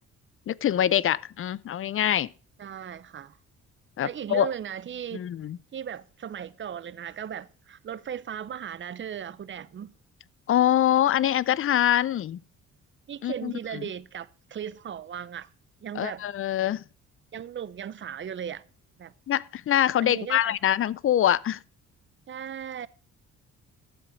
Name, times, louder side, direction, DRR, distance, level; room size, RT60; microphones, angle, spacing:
voice 1, 0.5-2.3 4.0-4.5 5.1-5.6 10.5-12.4 13.2-13.9 15.9-16.8 19.3-21.6, left 11 dB, 45° left, 0.5 m, -24 dB
voice 2, 2.6-3.4 4.0-5.3 5.7-9.9 13.1-15.5 15.8-16.2 17.3-18.6 19.0-19.1 20.0-20.5 22.3-22.9, right 8 dB, 40° right, 0.7 m, -37 dB
12.5 x 7.5 x 5.2 m
cardioid pair, 90°, 30 cm